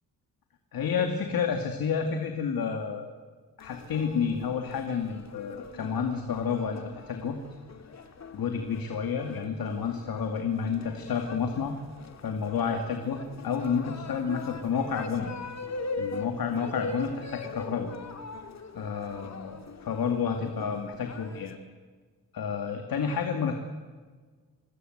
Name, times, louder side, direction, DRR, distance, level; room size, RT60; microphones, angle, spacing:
voice 1, 0.7-3.1 3.6-7.4 8.3-11.8 12.2-15.3 16.0-17.9 18.7-21.6 22.3-23.6, left 6 dB, 70° left, 4 dB, 2.4 m, -30 dB
sound 1, 3.6-21.6, left 3 dB, 50° left, 2.3 m, -41 dB
25.0 x 21.5 x 8.0 m, 1.5 s
wide cardioid pair, 115°, 36 cm